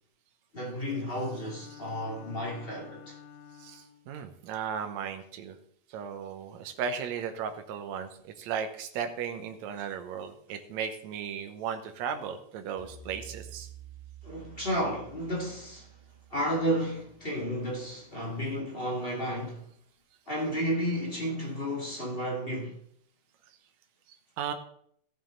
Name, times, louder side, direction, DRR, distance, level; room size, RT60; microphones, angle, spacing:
voice 1, 0.5-3.2 14.2-15.9 16.3-19.6 20.3-22.7, equal, 20° left, 2.0 m, -32 dB
Bowed string instrument, 1.1-4.1, left 8 dB, 75° left, 1.5 m, -50 dB
voice 2, 3.6-5.6 5.9-13.7 24.4-24.5, right 7 dB, 70° right, 2.1 m, -36 dB
sound 1, 12.8-18.2, right 7 dB, 30° right, 0.6 m, -50 dB
15.0 x 7.3 x 3.9 m
omnidirectional pair, 3.6 m